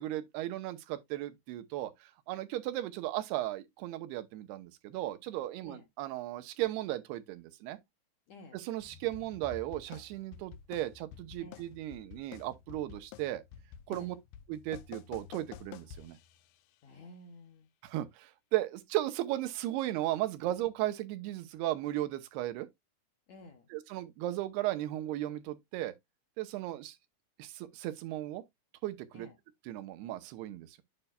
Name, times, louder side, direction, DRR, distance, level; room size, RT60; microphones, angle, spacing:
voice 1, 0.0-7.8 8.5-13.4 13.9-14.2 14.5-16.2 17.8-22.7 23.7-25.9 26.4-27.0 27.4-28.4 28.8-29.3 29.7-30.8, right 15 dB, 90° right, 2.8 m, -36 dB
voice 2, 8.3-8.6 11.4-11.7 13.9-14.1 16.8-17.7 23.3-23.7 29.1-29.4, left 1 dB, 70° left, 1.8 m, -52 dB
sound 1, 8.8-16.6, left 9 dB, 85° left, 1.9 m, -50 dB
8.9 x 5.4 x 2.3 m
omnidirectional pair, 4.6 m